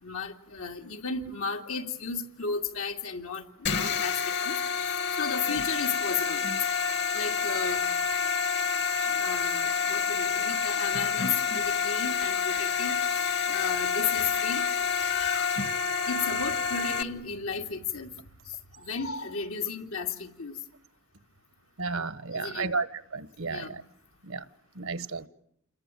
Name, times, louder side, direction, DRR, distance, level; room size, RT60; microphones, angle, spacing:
voice 1, 0.0-6.4 7.1-7.9 9.0-13.0 13.5-14.6 14.9-15.6 16.0-18.1 18.5-20.6 22.3-22.8 23.4-23.8, left 5 dB, 85° left, 4 dB, 2.6 m, -34 dB
sound 1, 3.7-17.0, left 6 dB, 55° left, 1.6 m, -28 dB
voice 2, 21.8-22.9 23.1-23.8 24.2-24.4 24.8-25.3, right 4 dB, 85° right, 15 dB, 1.3 m, -32 dB
29.0 x 22.0 x 9.2 m, 0.72 s
head